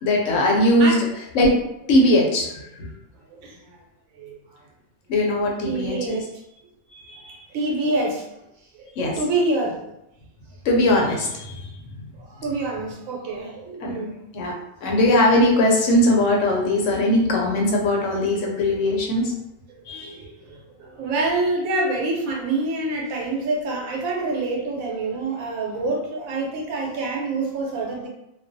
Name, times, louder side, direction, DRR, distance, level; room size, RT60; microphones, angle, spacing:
voice 1, 0.0-0.9 1.3-1.5 1.9-2.5 2.8-2.9 5.1-6.2 7.1-7.3 9.0-9.2 10.7-11.7 13.8-13.9 14.3-14.5 14.8-19.3 19.9-20.2, left 1 dB, 70° left, 0 dB, 0.9 m, -20 dB
voice 2, 5.6-6.2 7.5-8.3 8.8-8.9 9.2-9.8 12.2-14.2 20.1-28.1, right 2 dB, 80° right, -1 dB, 1.1 m, -26 dB
2.4 x 2.2 x 2.5 m, 0.84 s
omnidirectional pair, 1.4 m